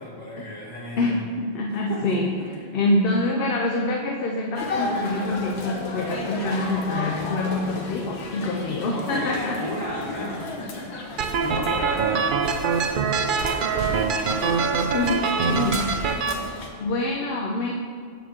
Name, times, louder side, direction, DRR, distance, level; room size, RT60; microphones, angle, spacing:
voice 1, 0.0-1.2 1.9-2.0 8.9-14.4, left 1 dB, 40° left, -6 dB, 1.8 m, -35 dB
voice 2, 1.0-2.3 2.7-9.6 14.8-16.0 16.2-16.5 16.8-17.7, left 2 dB, 60° left, 1 dB, 0.8 m, -26 dB
sound 1, 4.5-16.7, left 2 dB, 75° left, 1.2 m, -34 dB
sound 2, 11.2-16.3, right 5 dB, 60° right, 0.6 m, -24 dB
7.3 x 7.1 x 3.6 m, 2.2 s
omnidirectional pair, 1.1 m